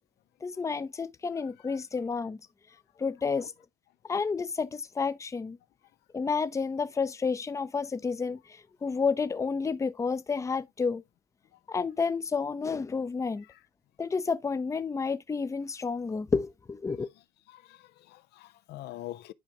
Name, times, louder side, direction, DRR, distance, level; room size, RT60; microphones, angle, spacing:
voice 1, 0.4-2.4 3.0-3.5 4.1-5.6 6.1-8.4 8.8-11.0 11.7-13.4 14.0-17.1, left 5 dB, 20° left, 0.6 m, -30 dB
voice 2, 1.4-1.8 3.4-3.5 11.5-11.6 13.5-13.6 17.5-19.3, left 14 dB, 75° left, 0.6 m, -45 dB
10.5 x 4.9 x 2.9 m
cardioid pair, 110°, 17 cm